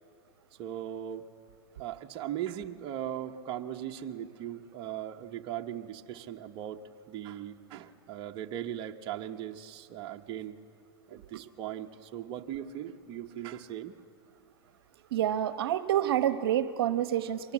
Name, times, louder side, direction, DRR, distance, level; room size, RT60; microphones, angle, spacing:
voice 1, 0.6-1.3 1.8-10.6 11.1-13.9, right 11 dB, 35° right, 3 dB, 1.0 m, -39 dB
voice 2, 11.1-11.4 15.1-17.5, right 11 dB, 65° right, 11 dB, 1.0 m, -28 dB
24.0 x 19.0 x 7.4 m, 2.4 s
hypercardioid pair, 125°, 13 cm